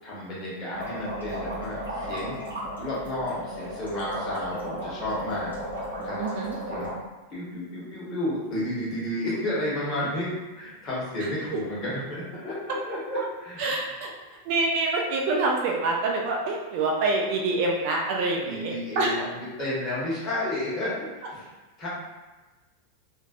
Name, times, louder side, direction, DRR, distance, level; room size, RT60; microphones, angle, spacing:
voice 1, 0.0-2.4 2.8-5.5 6.0-6.2 6.7-6.9 7.3-13.6 18.4-21.5 21.8-21.9, left 1 dB, 30° left, -7 dB, 1.2 m, -32 dB
sound 1, 0.7-6.9, equal, 75° right, 1.0 m, -35 dB
voice 2, 6.2-6.6 13.6-14.1 14.5-19.1, right 3 dB, 45° right, 0 dB, 0.4 m, -26 dB
3.1 x 2.4 x 2.4 m, 1.2 s
figure-of-eight pair, 90°, 0 cm